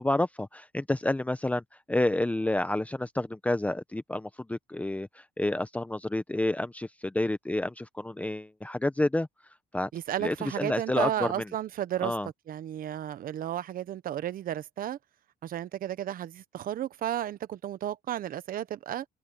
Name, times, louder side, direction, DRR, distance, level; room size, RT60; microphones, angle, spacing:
voice 1, 0.0-9.3 9.7-9.9 10.2-11.3 12.0-12.3, left 1 dB, 10° left, 0.9 m, -29 dB
voice 2, 9.9-12.1 12.5-15.0 15.4-19.0, right 11 dB, 55° right, 1.1 m, -33 dB
cardioid pair, 110°, 17 cm